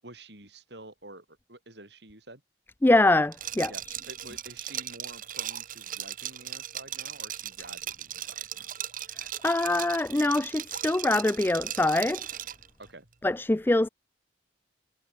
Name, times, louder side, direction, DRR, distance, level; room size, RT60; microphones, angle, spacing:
voice 1, 0.0-2.4 3.7-8.7 12.8-13.1, right 2 dB, 70° right, 7.7 m, -49 dB
voice 2, 2.8-3.7 9.2-12.3 13.2-13.9, left 2 dB, 10° left, 0.3 m, -24 dB
Liquid, 3.3-12.7, right 11 dB, 45° right, 1.2 m, -37 dB
head